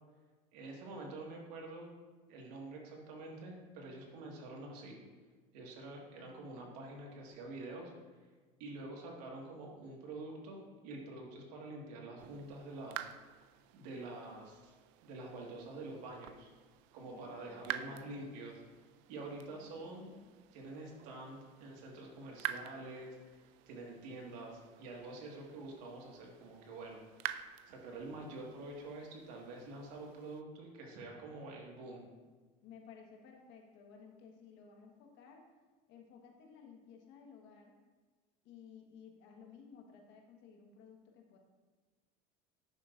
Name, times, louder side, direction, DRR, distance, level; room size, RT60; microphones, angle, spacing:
voice 1, 0.5-1.9 2.3-5.0 5.5-7.9 8.6-13.1 13.7-14.7 15.0-16.5 16.9-18.5 19.1-20.1 20.5-23.2 23.7-27.0 27.4-32.0, right 2 dB, 85° right, -1 dB, 1.8 m, -47 dB
voice 2, 6.2-6.8 17.0-18.2 19.4-20.3 32.6-35.4 35.9-37.7 38.4-41.4, left 6 dB, 65° left, 1 dB, 1.4 m, -57 dB
sound 1, 12.2-30.4, right 12 dB, 70° right, 0.4 m, -49 dB
10.0 x 6.9 x 2.5 m, 1.4 s
supercardioid pair, 110°, 20 cm